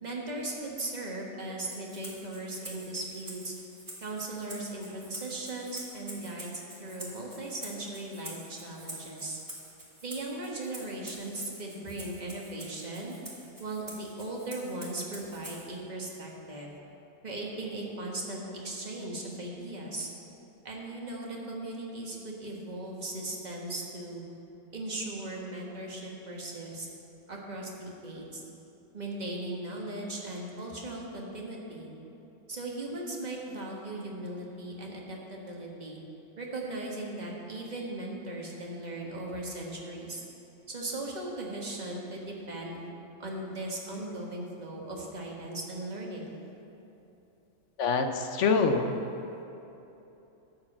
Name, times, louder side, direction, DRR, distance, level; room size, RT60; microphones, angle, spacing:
voice 1, 0.0-3.5 4.0-6.5 6.8-9.4 10.0-13.1 13.6-16.7 17.2-20.1 20.6-24.2 24.7-26.9 27.3-28.4 28.9-31.9 32.5-36.0 36.4-40.2 40.7-42.8 43.2-46.4, right 2 dB, 30° right, -2 dB, 1.4 m, -38 dB
Rattle (instrument), 1.6-15.8, right 1 dB, 15° right, 1.5 m, -47 dB
voice 2, 47.8-48.9, left 4 dB, 60° left, 6 dB, 0.9 m, -25 dB
11.5 x 4.8 x 7.3 m, 3.0 s
omnidirectional pair, 1.6 m